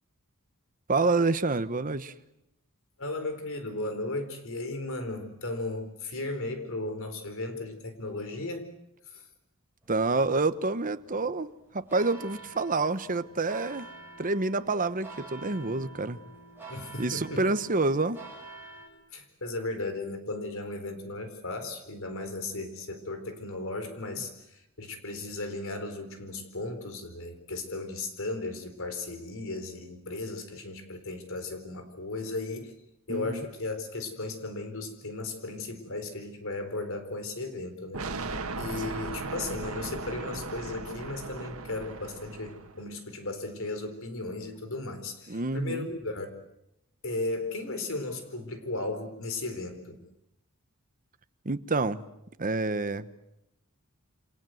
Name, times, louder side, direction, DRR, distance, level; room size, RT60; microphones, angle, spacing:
voice 1, 0.9-2.1 9.9-13.9 14.2-16.2 17.0-18.2 33.1-33.4 45.3-45.9 51.4-52.0 52.4-53.1, right 3 dB, 40° right, 12 dB, 1.2 m, -28 dB
voice 2, 3.0-8.7 9.1-9.2 16.7-17.5 19.1-32.7 33.1-38.0 38.6-46.3 47.0-50.0, left 2 dB, 65° left, 8 dB, 4.4 m, -36 dB
sound 1, 9.8-18.9, right 3 dB, 10° right, 7.6 m, -48 dB
sound 2, 37.9-42.8, right 3 dB, 75° right, 2.1 m, -37 dB
28.5 x 26.5 x 7.9 m, 0.85 s
head